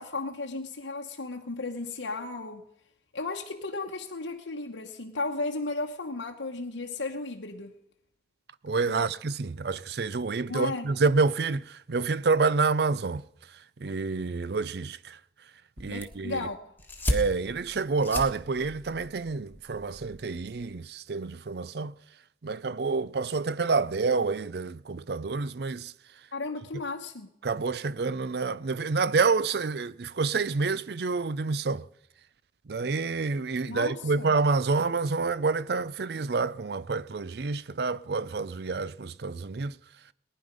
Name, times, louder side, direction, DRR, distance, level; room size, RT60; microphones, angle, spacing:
voice 1, 0.0-2.6 3.1-7.7 8.9-9.1 10.5-10.9 15.9-16.6 26.3-27.3 33.7-34.3, left 3 dB, 85° left, 1.0 m, -34 dB
voice 2, 8.6-15.2 15.8-16.5 17.1-21.9 22.4-25.9 27.4-31.9 32.7-39.8, right 4 dB, 60° right, 0.5 m, -28 dB
sound 1, 15.8-20.8, left 1 dB, 10° left, 1.4 m, -36 dB
19.0 x 10.5 x 5.2 m
head